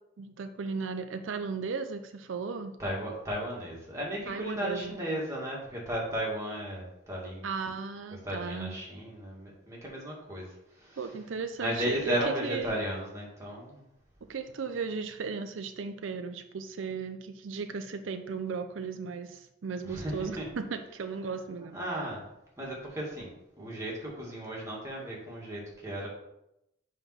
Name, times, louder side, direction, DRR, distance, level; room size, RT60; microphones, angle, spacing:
voice 1, 0.2-2.7 4.3-5.0 7.4-8.8 11.0-12.2 12.4-12.7 14.3-21.8, right 5 dB, 85° right, 8 dB, 0.5 m, -36 dB
voice 2, 2.8-7.5 8.2-11.1 11.6-13.9 19.9-20.5 21.6-22.3 22.6-23.3 23.6-26.1, equal, 15° right, -4 dB, 2.1 m, -35 dB
7.1 x 3.7 x 5.8 m, 0.85 s
head